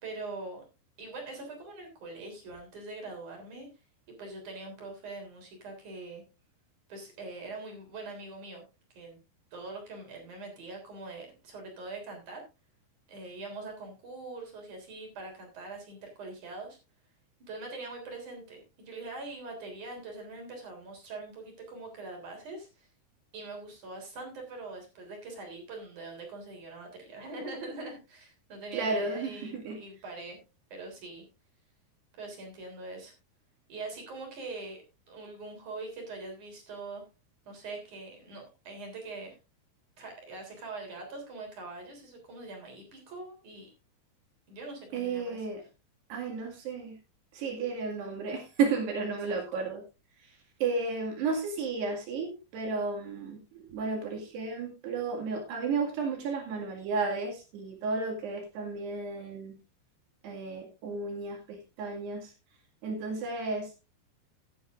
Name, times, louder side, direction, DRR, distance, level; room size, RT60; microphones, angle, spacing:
voice 1, 0.0-0.6 1.0-3.7 4.2-6.2 6.9-8.6 8.9-9.2 9.5-12.4 13.1-16.8 17.5-22.9 23.3-30.4 30.7-31.2 32.2-33.1 33.7-34.8 35.1-37.0 37.5-39.4 40.0-43.7 44.5-45.5 49.3-49.6, right 3 dB, 45° right, 2 dB, 4.6 m, -43 dB
voice 2, 28.7-29.8 44.9-45.6 46.1-47.0 47.3-49.8 50.2-59.6 60.2-62.3 62.8-63.7, right 4 dB, 70° right, 1 dB, 4.1 m, -33 dB
15.0 x 10.0 x 2.5 m, 0.28 s
omnidirectional pair, 5.2 m